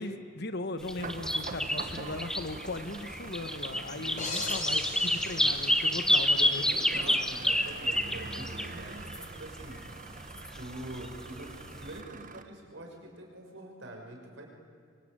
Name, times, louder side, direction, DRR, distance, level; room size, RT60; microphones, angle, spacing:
voice 1, 0.0-7.1, left 2 dB, 55° left, 10 dB, 1.3 m, -38 dB
sound 1, 0.9-9.4 9.6-10.0 10.3-11.2 11.5-11.9, left 1 dB, 5° left, 1.1 m, -29 dB
sound 2, 1.0-12.4, right 3 dB, 45° right, 1.5 m, -44 dB
voice 2, 3.9-5.2 6.3-9.8 10.6-14.5, right 1 dB, 70° right, 1 dB, 5.9 m, -45 dB
sound 3, 4.2-6.4, left 3 dB, 40° left, 5.0 m, -40 dB
27.0 x 24.0 x 9.0 m, 2.3 s
head